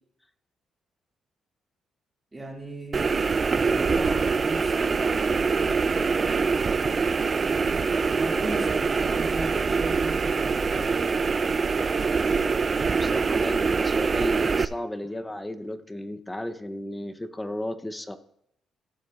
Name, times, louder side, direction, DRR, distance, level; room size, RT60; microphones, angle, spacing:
voice 1, 2.3-5.7 7.5-11.3, right 2 dB, 20° right, -2 dB, 2.2 m, -37 dB
sound 1, 2.9-14.6, right 4 dB, 35° right, 0.4 m, -24 dB
voice 2, 13.0-18.2, left 1 dB, 10° left, 10 dB, 0.8 m, -34 dB
17.0 x 7.4 x 2.4 m, 0.73 s
cardioid pair, 90°, 0 cm